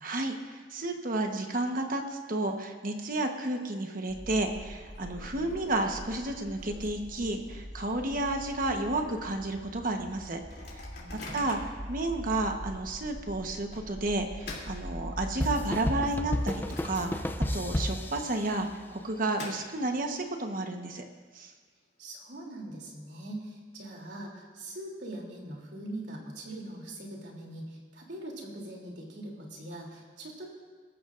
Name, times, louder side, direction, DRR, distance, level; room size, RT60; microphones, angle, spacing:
voice 1, 0.0-10.4 11.3-11.6 11.9-21.0 21.3-21.5, right 2 dB, 50° right, 4 dB, 1.2 m, -31 dB
Microwave oven, 3.8-4.1 4.4-4.5 4.8-7.9 8.3-8.4 8.6-9.0 9.5-9.6 10.3-11.8 12.5-12.6 13.7-15.5 16.0-17.5 17.8-17.9 18.7-20.1, left 2 dB, 65° left, 3.1 m, -47 dB
sound 1, 4.1-18.0, equal, 10° right, 2.2 m, -43 dB
voice 2, 10.9-11.4 22.0-30.5, right 1 dB, 70° right, -1 dB, 3.1 m, -42 dB
sound 2, 15.4-19.0, left 1 dB, 10° left, 0.5 m, -32 dB
26.0 x 14.0 x 2.6 m, 1.5 s
head